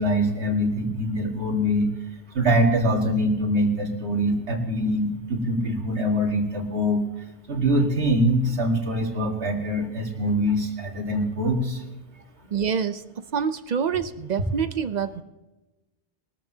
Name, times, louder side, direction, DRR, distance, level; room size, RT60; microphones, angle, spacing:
voice 1, 0.0-1.9 2.3-11.8, equal, 80° right, 2 dB, 2.1 m, -24 dB
voice 2, 12.5-13.0 13.3-15.2, right 7 dB, 55° right, 12 dB, 0.5 m, -26 dB
22.0 x 13.5 x 2.8 m, 1.1 s
omnidirectional pair, 1.1 m